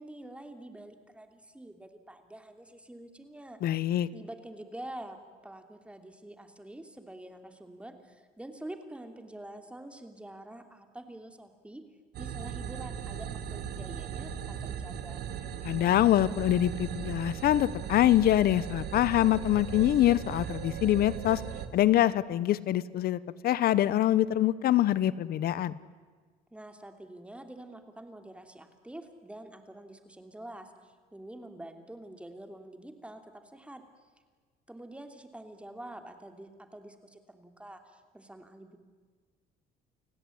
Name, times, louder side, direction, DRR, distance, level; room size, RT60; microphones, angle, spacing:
voice 1, 0.0-3.6 4.1-11.8 12.2-15.3 26.5-33.8 34.7-38.8, right 1 dB, 5° right, 6 dB, 2.9 m, -46 dB
voice 2, 3.6-4.1 15.6-21.4 21.7-25.8, left 13 dB, 65° left, 18 dB, 0.9 m, -25 dB
sound 1, 12.1-21.7, right 8 dB, 75° right, 2.0 m, -38 dB
30.0 x 17.0 x 9.8 m, 1.5 s
cardioid pair, 110°, 17 cm